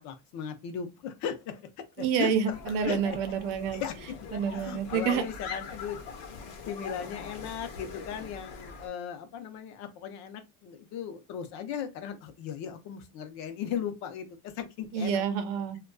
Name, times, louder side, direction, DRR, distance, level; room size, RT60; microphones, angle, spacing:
voice 1, 0.0-3.0 3.7-6.0 6.7-15.2, left 8 dB, 55° left, 0.6 m, -37 dB
voice 2, 2.0-3.8 4.3-5.2 14.9-15.8, right 7 dB, 75° right, 0.7 m, -28 dB
sound 1, 2.5-8.9, left 5 dB, 85° left, 0.8 m, -43 dB
2.4 x 2.2 x 2.2 m
cardioid pair, 170°, 34 cm